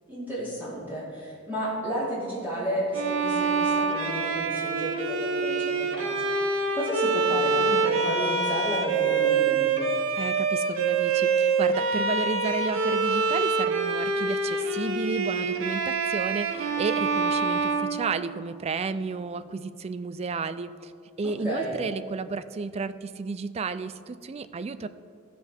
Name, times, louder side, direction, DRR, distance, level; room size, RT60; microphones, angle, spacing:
voice 1, 0.1-9.9 21.2-21.7, equal, 10° right, -9 dB, 2.7 m, -32 dB
Bowed string instrument, 2.9-18.7, right 4 dB, 75° right, 0.8 m, -26 dB
voice 2, 10.2-20.9 21.2-24.9, right 4 dB, 30° right, 13 dB, 0.3 m, -32 dB
15.0 x 5.8 x 4.3 m, 2.3 s
head